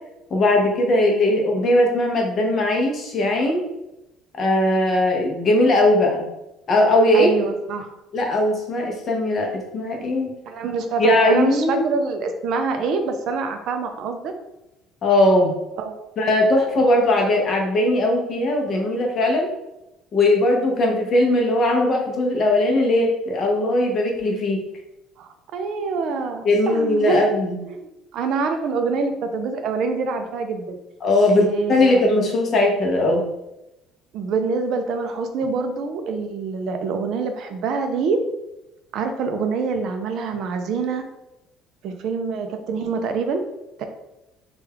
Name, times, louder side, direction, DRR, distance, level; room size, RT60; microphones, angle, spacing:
voice 1, 0.3-3.6 4.4-6.3 6.7-7.3 8.1-10.3 11.0-11.8 15.0-15.5 16.2-19.5 20.1-24.6 26.4-27.6 31.0-33.3, left 1 dB, 30° left, 1 dB, 0.6 m, -19 dB
voice 2, 7.1-7.9 10.5-14.3 15.8-16.0 25.2-27.2 27.7-30.8 31.3-32.0 34.1-38.2 38.9-41.0 41.8-43.4 43.8-43.9, right 4 dB, 50° right, 6 dB, 0.3 m, -25 dB
3.2 x 2.2 x 3.3 m, 0.91 s
cardioid pair, 175°, 0 cm